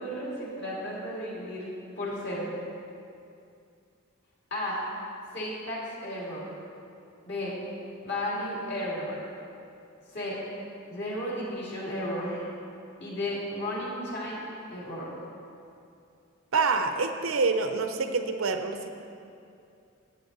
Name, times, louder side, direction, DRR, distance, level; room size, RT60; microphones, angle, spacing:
voice 1, 0.0-1.7 2.0-2.5 4.5-4.8 5.3-6.4 7.2-7.6 8.0-9.1 10.1-10.4 10.9-12.4 13.0-14.4 14.7-15.1, left 1 dB, 55° left, -5 dB, 2.9 m, -33 dB
voice 2, 16.5-18.9, right 4 dB, 80° right, 7 dB, 0.7 m, -26 dB
11.5 x 8.8 x 4.1 m, 2.5 s
head